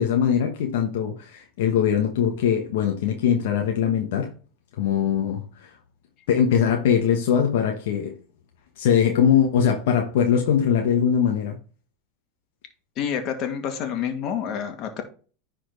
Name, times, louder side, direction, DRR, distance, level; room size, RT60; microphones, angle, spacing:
voice 1, 0.0-4.3 4.8-5.7 6.3-8.1 8.8-11.6, left 8 dB, 75° left, 1.2 m, -21 dB
voice 2, 13.0-15.0, left 8 dB, 50° left, 2.1 m, -28 dB
10.0 x 4.4 x 4.1 m
hypercardioid pair, 100°, 0 cm